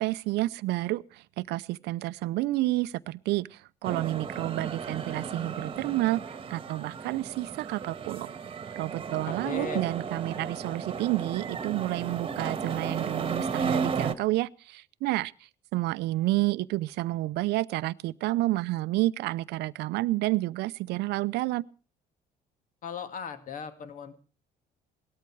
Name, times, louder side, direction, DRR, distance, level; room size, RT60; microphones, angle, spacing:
voice 1, 0.0-6.2 6.5-8.3 8.7-15.3 15.7-21.7, right 18 dB, 85° right, 0.7 m, -30 dB
sound 1, 3.8-14.1, right 5 dB, 30° right, 1.5 m, -34 dB
voice 2, 9.1-9.9 22.8-24.2, left 6 dB, 50° left, 2.2 m, -38 dB
18.0 x 13.5 x 4.7 m
cardioid pair, 110°, 17 cm